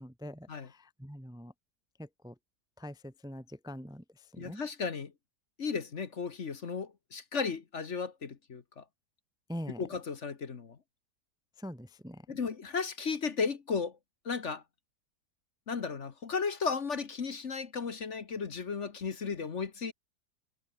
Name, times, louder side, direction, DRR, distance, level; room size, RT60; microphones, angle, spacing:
voice 1, 0.0-1.5 2.0-2.3 2.8-4.6 9.5-9.8 11.6-12.2, equal, 5° right, 0.9 m, -44 dB
voice 2, 4.4-5.1 5.6-8.8 9.8-10.8 12.3-13.9 14.2-14.6 15.7-19.9, left 5 dB, 45° left, 1.5 m, -35 dB
omnidirectional pair, 1.8 m